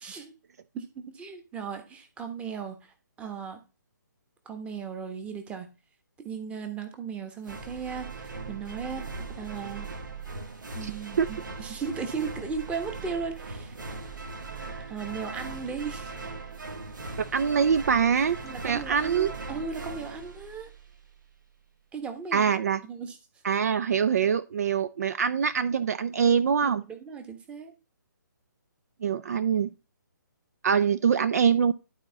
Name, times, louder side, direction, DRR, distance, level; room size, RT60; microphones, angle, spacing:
voice 1, 0.0-0.3 0.7-2.9 3.2-3.6 4.4-5.7 6.2-9.9 10.7-13.7 14.0-14.2 14.9-16.1 18.4-20.7 21.9-22.6 22.8-23.2 26.6-27.7, right 5 dB, 10° right, 1.2 m, -36 dB
sound 1, 7.4-21.1, right 4 dB, 70° right, 2.0 m, -39 dB
voice 2, 10.8-11.3 17.3-18.4 18.6-19.3 22.3-22.8 23.4-26.8 29.0-29.7 30.6-31.7, right 7 dB, 50° right, 0.5 m, -24 dB
11.5 x 4.3 x 4.0 m
figure-of-eight pair, 140°, 11 cm